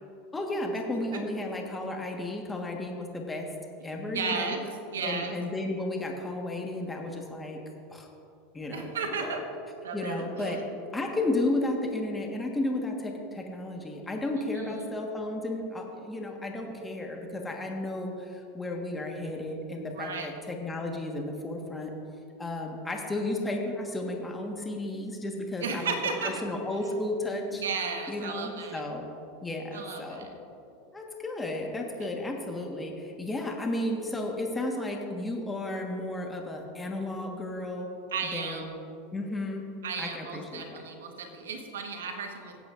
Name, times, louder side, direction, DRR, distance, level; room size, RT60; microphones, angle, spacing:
voice 1, 0.3-3.5 3.8-4.5 5.0-7.6 7.9-8.1 8.5-9.4 9.9-10.6 10.9-21.9 22.4-25.9 26.2-27.6 28.1-29.0 29.4-30.3 30.9-37.9 38.3-38.7 39.1-39.6 40.0-40.8, left 2 dB, 15° left, 1 dB, 1.4 m, -33 dB
voice 2, 3.8-4.6 4.9-5.3 8.7-9.4 9.8-10.6 14.5-14.9 19.9-20.3 25.6-26.4 27.5-28.8 29.7-30.3 32.0-32.1 38.1-38.7 39.8-42.6, right 5 dB, 85° right, 4 dB, 1.3 m, -34 dB
17.5 x 8.5 x 2.6 m, 2.6 s
hypercardioid pair, 95°, 0 cm